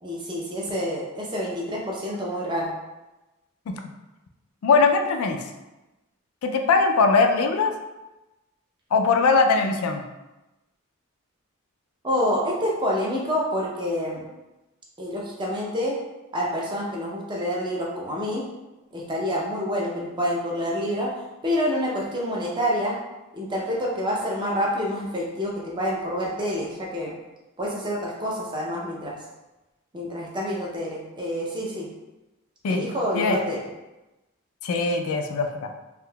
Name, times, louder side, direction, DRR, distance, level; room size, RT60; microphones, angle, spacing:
voice 1, 0.0-2.7 12.0-14.2 15.0-16.0 16.3-18.4 18.9-21.1 21.4-23.0 23.3-27.1 27.6-29.2 29.9-31.9 32.7-33.6, equal, 20° right, -3 dB, 0.5 m, -27 dB
voice 2, 4.6-5.4 6.4-7.7 8.9-10.0 32.6-32.8 33.1-33.4 34.6-35.7, left 4 dB, 80° left, 5 dB, 0.4 m, -21 dB
3.6 x 2.6 x 2.2 m, 1.0 s
head